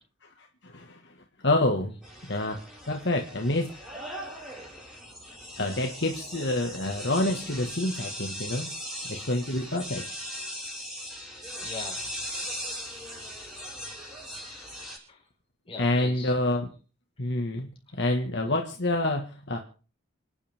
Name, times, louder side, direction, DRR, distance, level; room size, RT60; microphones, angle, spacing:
voice 1, 0.4-1.1 1.4-1.9 2.2-2.6 2.9-3.7 5.6-8.7 9.1-10.0 15.8-16.7 17.2-17.7 17.9-19.6, left 1 dB, 60° left, 2 dB, 1.7 m, -27 dB
sound 1, 2.0-15.0, equal, 5° right, 6.7 m, -39 dB
voice 2, 11.6-12.5 13.0-13.1 14.4-14.7 15.1-15.2 15.7-16.3, left 4 dB, 25° left, 0 dB, 4.8 m, -42 dB
29.5 x 10.0 x 3.6 m, 0.38 s
head